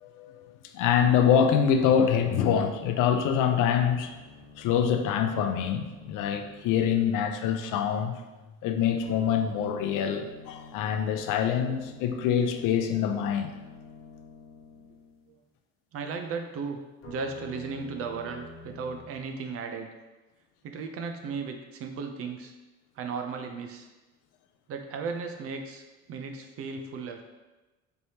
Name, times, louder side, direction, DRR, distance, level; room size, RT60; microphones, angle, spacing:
voice 1, 0.0-4.2 4.6-8.2 8.6-13.5, left 8 dB, 85° left, 7 dB, 0.5 m, -25 dB
sound 1, 1.0-7.3 9.0-15.3 17.0-19.0, left 4 dB, 45° left, 0.9 m, -48 dB
voice 2, 15.9-16.8 17.1-19.9 20.6-22.5 23.0-23.9 24.7-27.2, right 5 dB, 50° right, 5 dB, 0.4 m, -35 dB
4.5 x 3.3 x 2.7 m, 1.1 s
cardioid pair, 165°, 31 cm